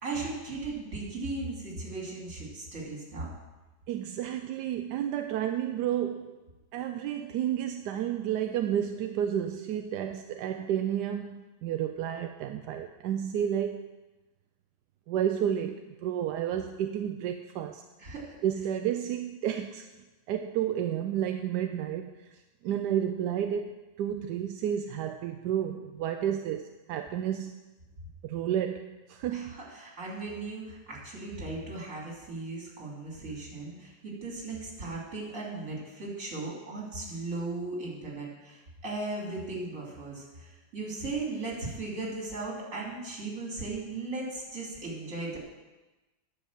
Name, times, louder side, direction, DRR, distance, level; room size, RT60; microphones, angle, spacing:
voice 1, 0.0-3.3 18.0-18.4 29.3-45.4, right 3 dB, 40° right, -3 dB, 3.3 m, -37 dB
voice 2, 3.9-6.4 6.7-13.9 15.1-17.8 18.4-19.9 20.3-27.5 28.2-29.6, right 10 dB, 75° right, 6 dB, 1.0 m, -31 dB
10.0 x 6.7 x 7.2 m, 1.1 s
omnidirectional pair, 2.1 m